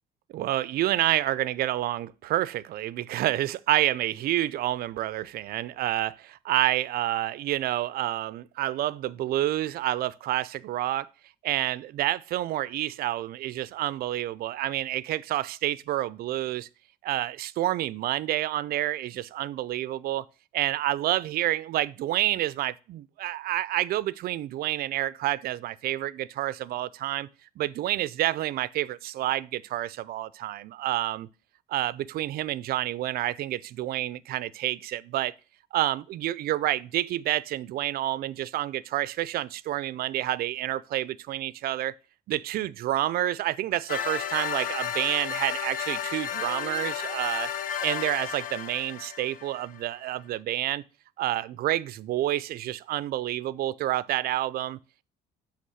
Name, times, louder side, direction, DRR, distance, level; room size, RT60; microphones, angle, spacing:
voice 1, 0.3-11.1 11.4-16.7 17.0-20.2 20.5-27.3 27.6-31.3 31.7-35.3 35.7-41.9 42.3-47.5 47.8-50.8 51.2-54.8, right 14 dB, 65° right, 0.5 m, -29 dB
sound 1, 43.9-49.8, left 9 dB, 55° left, 0.7 m, -33 dB
7.7 x 3.5 x 6.2 m
cardioid pair, 110°, 17 cm